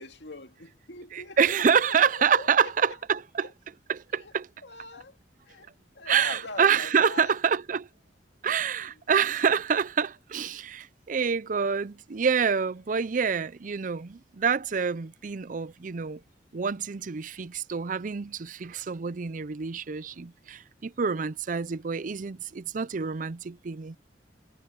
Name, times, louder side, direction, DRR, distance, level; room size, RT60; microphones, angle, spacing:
voice 1, 0.0-3.0 3.4-3.5 4.1-4.3 4.6-5.2 5.4-5.7 6.0-7.4 20.1-20.2, left 3 dB, 80° left, 2.1 m, -43 dB
voice 2, 1.1-3.5 3.9-4.5 6.1-7.9 8.4-16.2 16.5-24.0, right 6 dB, 45° right, 0.5 m, -27 dB
head